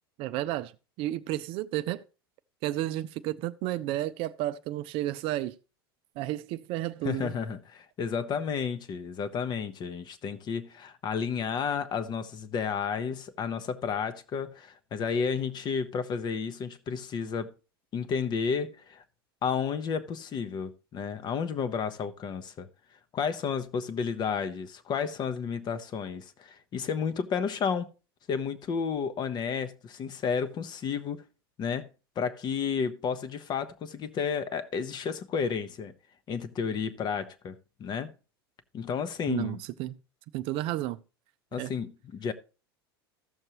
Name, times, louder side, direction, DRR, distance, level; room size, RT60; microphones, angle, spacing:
voice 1, 0.2-0.7 1.0-2.0 2.6-5.5 6.2-7.3 39.3-40.0 40.3-41.0 41.6-41.7, right 14 dB, 45° right, 0.4 m, -32 dB
voice 2, 7.0-17.5 17.9-19.0 19.4-22.7 23.1-27.9 28.3-31.2 31.6-31.9 32.2-35.9 36.3-38.1 38.7-39.6 41.5-42.3, left 6 dB, 35° left, 0.8 m, -32 dB
14.5 x 6.5 x 2.9 m
figure-of-eight pair, 85°, 13 cm